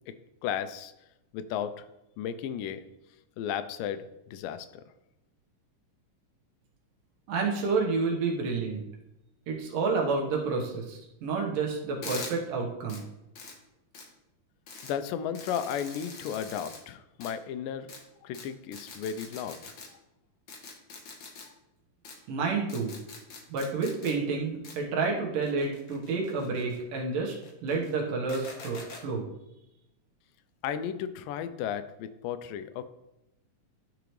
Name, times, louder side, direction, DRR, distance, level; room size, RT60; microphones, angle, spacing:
voice 1, 0.4-0.9 1.3-1.9 2.2-2.8 3.4-4.8 14.8-17.9 18.2-19.8 30.6-32.9, left 8 dB, 85° left, 11 dB, 2.2 m, -34 dB
voice 2, 7.3-8.8 9.5-13.0 22.3-22.9 23.5-27.4 27.6-29.2, right 4 dB, 80° right, -1 dB, 2.9 m, -29 dB
sound 1, 12.0-12.3 12.9-13.0 13.3-13.5 13.9-14.0 14.7-14.9 15.3-16.8 17.2-17.3 17.9-18.0 18.3-18.4 18.7-19.9 20.5-21.4 22.0-22.1 22.7-24.1 24.6-24.7 25.4-26.8 27.3-27.9 28.3-29.0, left 4 dB, 70° left, 1.2 m, -44 dB
12.0 x 4.9 x 3.1 m, 0.90 s
omnidirectional pair, 3.8 m